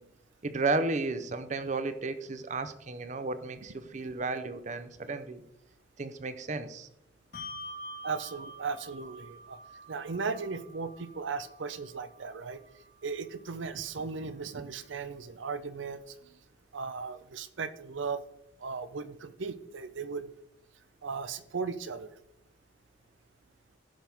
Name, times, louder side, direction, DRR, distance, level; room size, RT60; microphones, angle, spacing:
voice 1, 0.4-5.4 6.0-6.9, right 3 dB, 40° right, 11 dB, 0.6 m, -33 dB
Bell, 7.3-14.2, equal, 55° left, 1.4 m, -48 dB
voice 2, 8.0-9.6 9.9-12.6 13.0-16.1 16.7-18.2 18.6-20.3 21.0-22.1, right 5 dB, 85° right, 13 dB, 0.7 m, -37 dB
15.0 x 5.9 x 3.5 m, 0.81 s
head